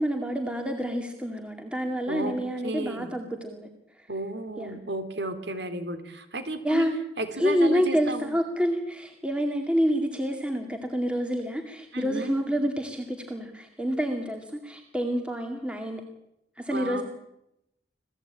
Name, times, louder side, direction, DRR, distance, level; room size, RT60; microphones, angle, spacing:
voice 1, 0.0-3.7 4.0-4.1 4.6-4.8 6.6-7.0 7.4-16.0 16.6-17.0, equal, 5° right, 3 dB, 2.2 m, -28 dB
voice 2, 2.1-3.1 4.1-6.9 7.2-8.4 11.9-12.3 16.7-17.0, right 2 dB, 70° right, 9 dB, 3.1 m, -33 dB
27.0 x 17.5 x 8.8 m, 0.83 s
head